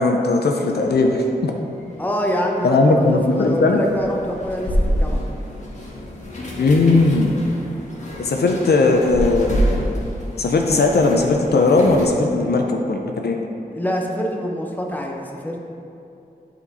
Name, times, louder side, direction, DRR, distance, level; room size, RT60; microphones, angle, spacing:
voice 1, 0.0-1.5 2.6-3.8 6.6-7.3 8.2-9.8 10.4-13.4, left 3 dB, 80° left, 3 dB, 0.6 m, -18 dB
sound 1, 0.7-12.1, equal, 50° left, 1.4 m, -28 dB
voice 2, 2.0-5.2 13.7-15.7, equal, 10° left, 0 dB, 0.9 m, -26 dB
8.5 x 4.4 x 4.1 m, 2.7 s
wide cardioid pair, 75°, 17 cm